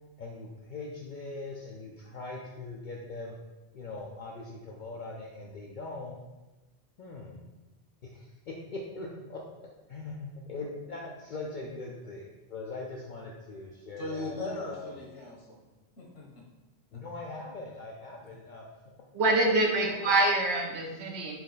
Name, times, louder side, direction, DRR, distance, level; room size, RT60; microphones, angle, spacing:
voice 1, 0.2-3.3 3.7-6.2 7.0-7.5 8.0-14.9 16.9-18.6 19.8-20.4, left 3 dB, 55° left, -1 dB, 0.5 m, -41 dB
voice 2, 14.0-15.6 16.0-16.4 16.9-17.0, left 2 dB, 90° left, -2 dB, 1.4 m, -38 dB
voice 3, 19.1-21.3, right 2 dB, 65° right, 1 dB, 1.0 m, -25 dB
4.4 x 3.1 x 4.0 m, 1.1 s
omnidirectional pair, 1.2 m